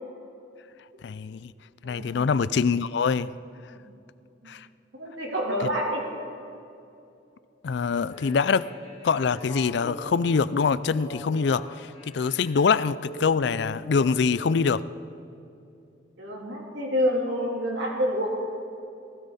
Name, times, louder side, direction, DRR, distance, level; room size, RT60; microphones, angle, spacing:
voice 1, 1.0-1.5 1.8-3.3 4.5-4.7 7.6-8.7 9.0-14.8, left 5 dB, 60° left, 17 dB, 0.4 m, -24 dB
voice 2, 1.8-2.2 5.0-6.0 16.2-18.3, equal, 70° right, -3 dB, 3.4 m, -27 dB
sound 1, 8.1-14.7, equal, 35° left, 2.4 m, -41 dB
18.5 x 17.0 x 4.2 m, 2.6 s
head